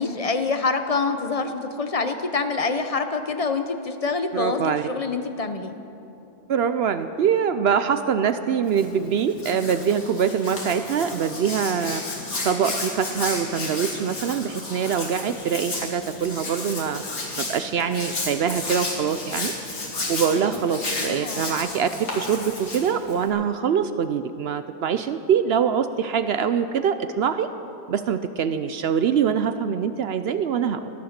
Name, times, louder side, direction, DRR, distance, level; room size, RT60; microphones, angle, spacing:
voice 1, 0.0-5.7 21.0-21.6, left 4 dB, 45° left, 7 dB, 0.4 m, -26 dB
voice 2, 4.3-4.9 6.5-12.0 12.4-17.0 17.4-19.5 20.1-21.9 22.2-27.5 27.9-30.9, right 7 dB, 65° right, 11 dB, 0.6 m, -24 dB
Hands, 8.6-23.3, left 2 dB, 80° left, 2.7 m, -32 dB
17.0 x 10.5 x 6.5 m, 2.9 s
omnidirectional pair, 1.5 m